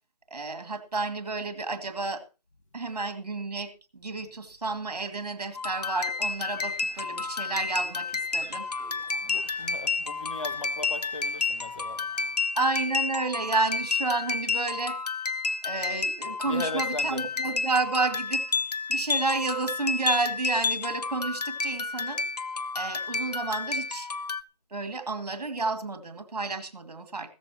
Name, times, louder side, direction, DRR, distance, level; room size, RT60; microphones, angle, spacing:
voice 1, 0.3-2.2 2.7-8.7 12.6-15.0 15.6-18.4 18.9-22.2 22.7-24.1 24.7-27.3, right 3 dB, 70° right, 2.2 m, -31 dB
sound 1, 5.5-24.4, left 4 dB, 70° left, 0.9 m, -30 dB
sound 2, 6.2-12.3, right 3 dB, 20° right, 2.8 m, -54 dB
voice 2, 9.2-12.0 16.5-17.2, left 2 dB, 50° left, 1.6 m, -37 dB
15.5 x 14.0 x 2.9 m
figure-of-eight pair, 180°, 21 cm